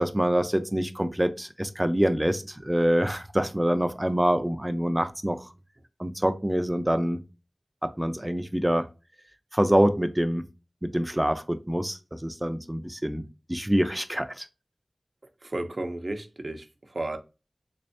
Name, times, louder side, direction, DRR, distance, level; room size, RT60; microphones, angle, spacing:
voice 1, 0.0-5.5 6.0-7.2 7.8-8.9 9.5-10.4 10.8-14.5, equal, 15° right, 0.5 m, -25 dB
voice 2, 15.4-16.7 16.9-17.2, right 2 dB, 55° right, 0.6 m, -32 dB
3.5 x 3.2 x 2.6 m
wide cardioid pair, 55°, 0 cm